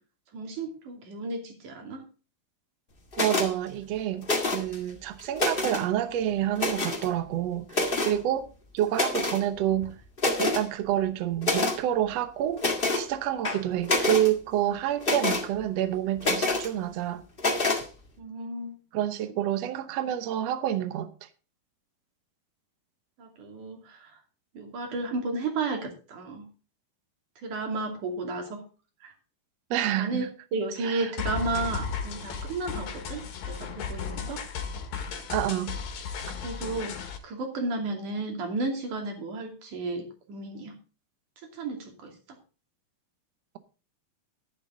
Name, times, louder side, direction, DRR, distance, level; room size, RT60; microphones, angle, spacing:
voice 1, 0.3-2.0 18.2-18.8 23.2-24.1 24.5-26.5 27.4-28.6 29.0-29.1 30.0-30.3 30.5-34.4 36.4-36.9 37.2-40.7 41.4-42.1, right 3 dB, 55° right, 4.0 m, -33 dB
sound 1, 3.1-3.5 4.2-4.8 5.2-5.8 6.5-7.1 7.7-8.2 8.9-9.4 9.8-9.9 10.2-10.6 11.4-11.8 12.6-13.0 13.4-14.3 15.0-15.4 16.2-16.7 17.4-17.8, left 2 dB, 50° left, 0.6 m, -26 dB
voice 2, 3.2-4.3 4.5-8.5 8.7-9.9 10.4-12.6 13.0-17.2 18.9-21.3 29.7-30.3 30.8-31.1 35.3-35.8, right 11 dB, 80° right, 1.4 m, -28 dB
sound 2, 31.2-37.2, left 6 dB, 70° left, 3.4 m, -35 dB
12.0 x 11.0 x 3.8 m
omnidirectional pair, 4.3 m